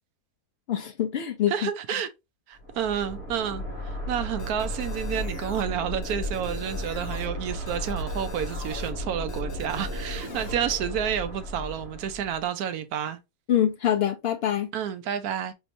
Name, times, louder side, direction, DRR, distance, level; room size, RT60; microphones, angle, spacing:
voice 1, 0.7-1.5 13.5-14.7, left 10 dB, 70° left, 0.5 m, -25 dB
voice 2, 1.5-2.1 2.5-13.2 14.7-15.5, right 9 dB, 80° right, 1.1 m, -30 dB
sound 1, 2.6-12.4, left 1 dB, 45° right, 2.0 m, -34 dB
sound 2, 4.4-5.6 6.0-7.3 7.7-8.9 9.3-10.5, equal, 40° left, 1.4 m, -42 dB
4.5 x 3.4 x 2.6 m
omnidirectional pair, 1.6 m